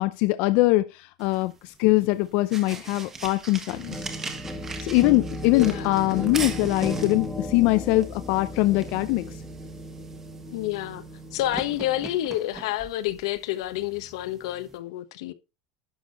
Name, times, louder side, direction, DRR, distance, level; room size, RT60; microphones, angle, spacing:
voice 1, 0.0-4.0 4.8-9.4, left 20 dB, 55° left, 0.5 m, -22 dB
sound 1, 1.2-14.8, right 4 dB, 15° right, 1.6 m, -41 dB
sound 2, 3.7-12.2, equal, 5° left, 1.5 m, -36 dB
voice 2, 5.5-5.9 10.5-11.0 11.3-15.3, left 14 dB, 85° left, 1.2 m, -29 dB
11.5 x 6.4 x 4.2 m
cardioid pair, 160°, 3 cm